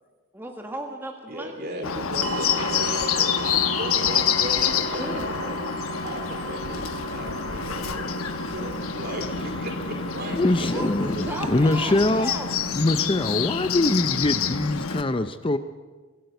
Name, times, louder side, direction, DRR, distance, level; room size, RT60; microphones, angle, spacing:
voice 1, 0.3-1.8 4.0-4.1 4.9-5.4 10.7-12.6, right 1 dB, 10° right, 1 dB, 1.7 m, -35 dB
voice 2, 1.3-5.6 6.0-8.3 8.5-10.8, right 1 dB, 50° right, 2 dB, 4.1 m, -36 dB
Bird, 1.8-15.0, left 7 dB, 90° left, 1.1 m, -27 dB
sound 1, 2.2-11.8, right 3 dB, 70° right, 1.4 m, -36 dB
voice 3, 10.4-12.3 12.8-15.6, left 2 dB, 25° left, 10 dB, 0.6 m, -23 dB
24.0 x 13.5 x 8.1 m, 1.4 s
head